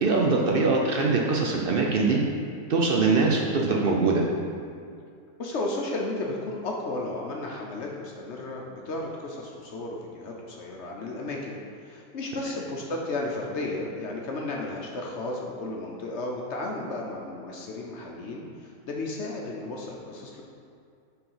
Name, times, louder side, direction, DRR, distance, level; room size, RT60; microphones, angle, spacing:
voice 1, 0.0-2.2 2.7-4.2, right 3 dB, 65° right, -1 dB, 0.5 m, -22 dB
voice 2, 5.4-20.4, left 2 dB, 60° left, -1 dB, 0.9 m, -34 dB
5.5 x 3.9 x 5.5 m, 2.3 s
omnidirectional pair, 1.5 m